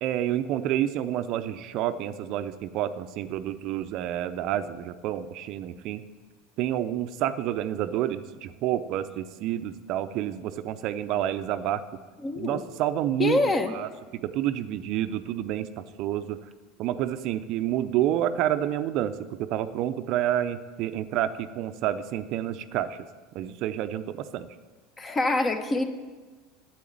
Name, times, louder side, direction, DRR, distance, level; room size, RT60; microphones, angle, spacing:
voice 1, 0.0-6.0 6.6-11.8 12.4-13.4 13.7-16.4 16.8-23.1 23.3-24.5, right 11 dB, 60° right, 11 dB, 0.5 m, -29 dB
voice 2, 12.2-12.6 13.2-13.7 25.0-25.8, left 2 dB, 25° left, 8 dB, 1.1 m, -25 dB
8.5 x 8.2 x 8.6 m, 1.4 s
hypercardioid pair, 85°, 0 cm